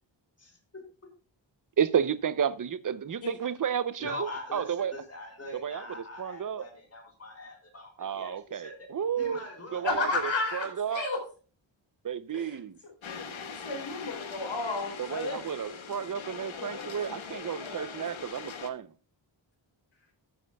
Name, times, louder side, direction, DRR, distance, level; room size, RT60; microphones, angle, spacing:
voice 1, 0.4-0.8 4.0-8.9 9.2-10.2, left 2 dB, 30° left, 4.2 m, -43 dB
voice 2, 1.8-4.9 5.5-6.7 8.0-9.4 9.7-11.1 12.0-12.8 15.0-18.9, right 8 dB, 45° right, 0.6 m, -32 dB
voice 3, 9.8-11.2 12.3-12.4 13.6-14.9, left 3 dB, 70° left, 4.5 m, -31 dB
sound 1, 13.0-18.7, left 5 dB, 85° left, 1.5 m, -40 dB
13.5 x 9.3 x 2.3 m
wide cardioid pair, 160°, 46 cm